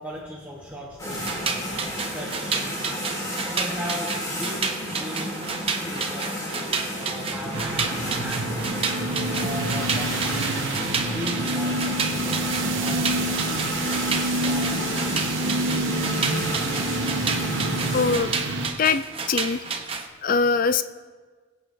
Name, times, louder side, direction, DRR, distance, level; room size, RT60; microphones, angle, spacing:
voice 1, 0.0-2.9 3.4-5.4 5.8-8.6 9.4-10.8 11.1-12.0 12.8-13.2 14.3-15.1, equal, 10° right, -4 dB, 1.1 m, -37 dB
sound 1, 1.0-18.2, equal, 15° left, 1.7 m, -32 dB
sound 2, 1.1-20.1, right 5 dB, 25° right, 0.7 m, -31 dB
sound 3, 7.5-18.7, right 2 dB, 65° right, 0.8 m, -27 dB
voice 2, 17.9-18.3 18.8-19.6 20.2-20.8, left 5 dB, 40° left, 11 dB, 0.3 m, -22 dB
22.5 x 8.1 x 2.6 m, 1.5 s
head